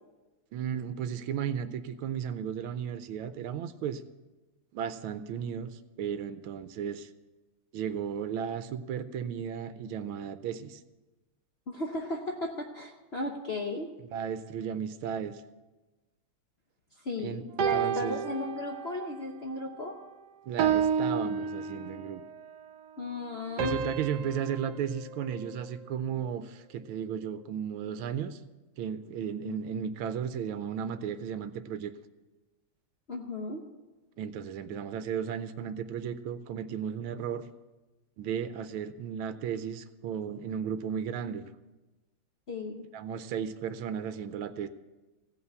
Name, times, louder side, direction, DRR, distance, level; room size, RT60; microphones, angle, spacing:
voice 1, 0.5-4.0 4.7-7.1 7.7-10.8 14.0-15.4 17.2-17.4 17.7-18.2 20.5-22.2 23.6-28.4 28.8-31.9 34.2-37.4 38.2-41.5 42.9-44.7, right 8 dB, 80° right, 12 dB, 1.4 m, -34 dB
voice 2, 11.7-13.9 17.0-20.0 23.0-23.8 29.4-29.6 33.1-33.7 42.5-42.9, left 2 dB, 60° left, 1 dB, 0.6 m, -35 dB
sound 1, 17.6-19.1 19.6-19.9 20.6-22.2 23.6-26.0, right 7 dB, 65° right, 1.1 m, -31 dB
16.0 x 5.6 x 8.0 m, 1.1 s
omnidirectional pair, 2.4 m